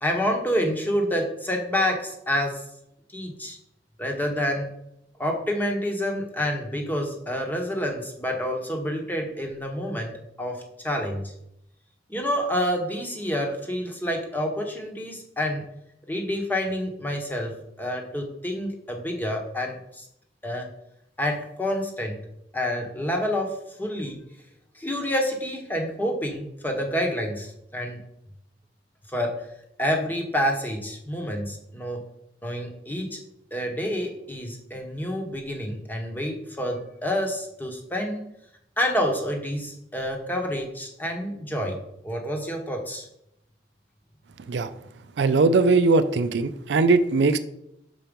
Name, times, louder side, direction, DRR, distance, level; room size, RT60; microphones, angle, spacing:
voice 1, 0.0-2.6 3.1-3.6 4.0-4.7 5.2-11.3 12.1-15.6 16.1-20.1 20.4-20.7 21.2-22.2 22.5-24.2 24.7-28.0 29.1-29.5 29.8-32.0 32.4-33.2 33.5-38.3 38.8-41.8 42.0-43.1, equal, 10° left, 2 dB, 1.0 m, -28 dB
voice 2, 45.2-47.4, right 3 dB, 70° right, 12 dB, 0.4 m, -20 dB
6.0 x 4.4 x 5.2 m, 0.79 s
head